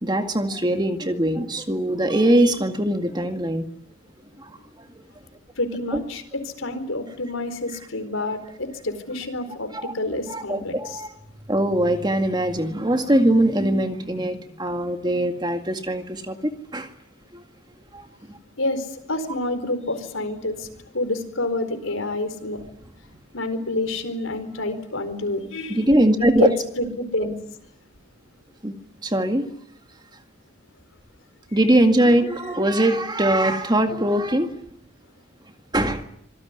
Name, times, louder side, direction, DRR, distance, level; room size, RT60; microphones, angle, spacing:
voice 1, 0.0-3.7 4.4-4.6 9.7-9.9 10.3-11.1 11.5-16.9 17.3-17.4 17.9-18.4 25.7-26.5 27.2-27.3 28.6-28.7 29.0-29.5 31.5-34.5 35.7-36.0, right 1 dB, 20° right, 7 dB, 2.0 m, -21 dB
voice 2, 5.6-11.0 18.6-20.7 20.9-22.6 23.3-25.9 26.2-26.5 26.8-27.3, left 2 dB, 85° left, 9 dB, 4.3 m, -28 dB
26.0 x 18.5 x 9.8 m, 0.74 s
head